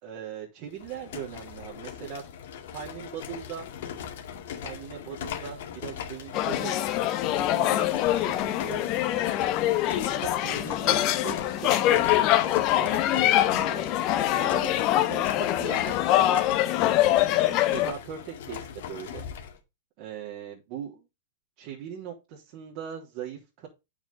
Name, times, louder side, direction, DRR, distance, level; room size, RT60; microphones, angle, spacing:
voice 1, 0.0-2.2 2.7-3.7 4.6-8.9 10.1-13.8 14.4-16.4 17.0-19.2 20.0-21.1 21.6-23.7, right 9 dB, 50° right, -2 dB, 3.7 m, -40 dB
sound 1, 0.7-19.6, left 8 dB, 60° left, 2.1 m, -39 dB
sound 2, 6.3-17.9, left 13 dB, 45° left, 1.3 m, -24 dB
9.3 x 7.4 x 3.7 m, 0.25 s
figure-of-eight pair, 100°, 0 cm